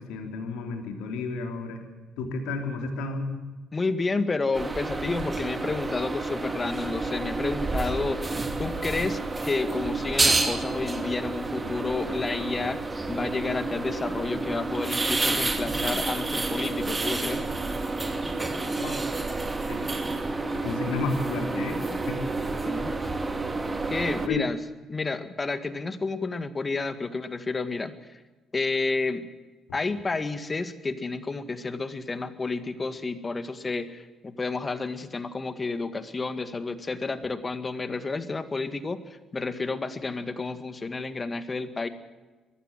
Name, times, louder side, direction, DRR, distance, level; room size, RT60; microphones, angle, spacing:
voice 1, 0.0-1.8 2.2-3.3 18.8-19.1 19.5-19.8 20.5-22.2 24.3-24.5, left 4 dB, 70° left, 4 dB, 3.5 m, -32 dB
voice 2, 3.7-12.8 13.1-17.4 22.7-22.9 23.7-24.6 24.9-28.2 28.5-29.3 29.7-41.9, left 3 dB, 30° left, 11 dB, 2.0 m, -30 dB
sound 1, 4.5-24.3, right 3 dB, 25° right, 2.5 m, -29 dB
23.0 x 15.0 x 7.7 m, 1.2 s
hypercardioid pair, 45°, 0 cm